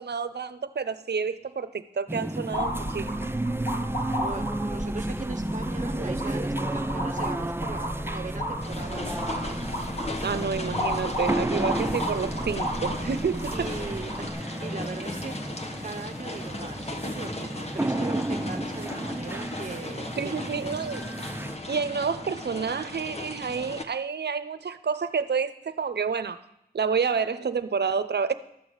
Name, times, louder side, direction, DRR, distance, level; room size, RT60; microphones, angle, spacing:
voice 1, 0.0-3.3 10.2-13.7 20.2-21.0 21.7-26.4 26.7-28.3, right 5 dB, 80° right, 0.6 m, -29 dB
sound 1, 2.1-21.6, right 1 dB, 15° right, 0.6 m, -32 dB
sound 2, 2.5-14.3, equal, 75° left, 3.7 m, -33 dB
voice 2, 4.2-9.0 13.5-20.8, right 3 dB, 50° right, 0.8 m, -39 dB
sound 3, 8.6-23.8, left 2 dB, 40° left, 1.2 m, -37 dB
12.5 x 7.0 x 6.3 m
cardioid pair, 45°, 17 cm